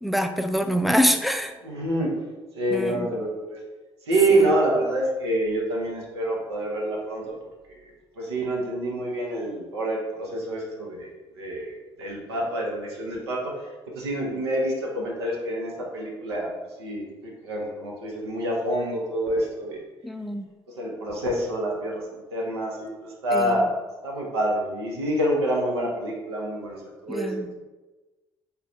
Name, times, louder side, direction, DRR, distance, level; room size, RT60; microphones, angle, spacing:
voice 1, 0.0-1.5 2.7-3.1 4.3-4.5 20.0-20.5 23.3-23.7 27.1-27.5, equal, ahead, 7 dB, 0.3 m, -25 dB
voice 2, 1.6-2.2 2.6-3.6 4.1-7.3 7.7-11.1 11.4-13.5 13.9-16.5 16.8-19.8 20.8-23.7 24.0-27.4, right 1 dB, 85° right, -1 dB, 0.7 m, -27 dB
5.6 x 2.2 x 2.5 m, 1.2 s
hypercardioid pair, 50°, 13 cm